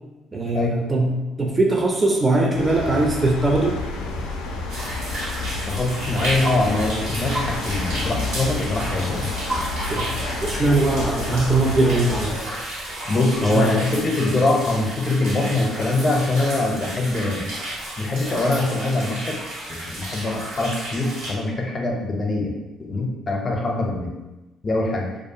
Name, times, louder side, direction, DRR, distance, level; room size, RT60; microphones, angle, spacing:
voice 1, 0.3-1.1 1.4-3.8 9.9-10.0 10.4-12.4 13.4-13.8, right 2 dB, 25° right, 0 dB, 0.4 m, -20 dB
sound 1, 2.5-12.4, left 3 dB, 85° left, 0.3 m, -30 dB
sound 2, 4.7-21.3, right 1 dB, 85° right, 0.9 m, -32 dB
voice 2, 5.7-9.3 13.1-17.5 18.0-19.4 19.7-24.2 24.6-25.1, left 2 dB, 35° left, 0 dB, 0.6 m, -23 dB
sound 3, 6.5-6.6 7.3-7.6 9.5-9.7 10.0-10.3, right 1 dB, 60° right, 0.7 m, -28 dB
2.4 x 2.3 x 2.7 m, 1.1 s
supercardioid pair, 75°, 0 cm